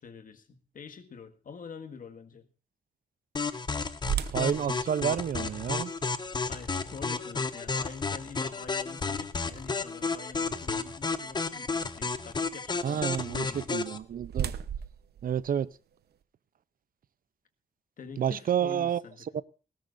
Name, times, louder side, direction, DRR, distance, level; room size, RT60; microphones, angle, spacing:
voice 1, 0.0-2.5 6.5-13.7 18.0-19.4, left 5 dB, 60° left, 1.8 m, -46 dB
sound 1, 3.4-14.0, left 4 dB, 25° left, 0.9 m, -32 dB
sound 2, 4.1-10.0 10.6-10.7 11.3-11.5 13.6-16.2, right 9 dB, 85° right, 0.9 m, -39 dB
voice 2, 4.3-5.9 12.8-14.5 15.2-15.7 18.2-19.0 19.3-19.4, right 9 dB, 60° right, 0.6 m, -29 dB
19.5 x 17.5 x 2.6 m
wide cardioid pair, 155°, 16 cm